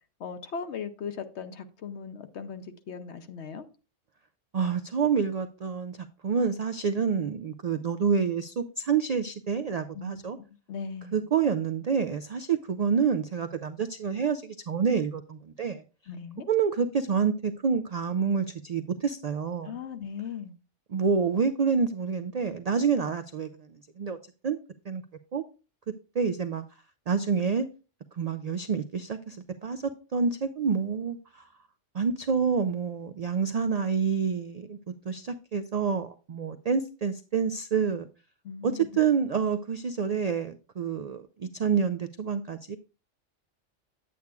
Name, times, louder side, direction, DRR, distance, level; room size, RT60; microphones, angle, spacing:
voice 1, 0.2-3.6 9.9-10.2 10.7-11.2 16.1-16.5 19.6-20.5 38.4-39.0, left 6 dB, 70° left, 1.0 m, -38 dB
voice 2, 4.5-10.4 11.1-15.8 16.5-19.8 20.9-23.7 24.0-24.2 24.4-24.6 24.9-25.0 25.3-25.4 26.1-26.6 27.1-27.7 28.2-31.4 31.9-34.8 35.1-38.1 38.6-42.8, right 6 dB, 85° right, 0.3 m, -28 dB
9.5 x 8.5 x 2.3 m
omnidirectional pair, 1.2 m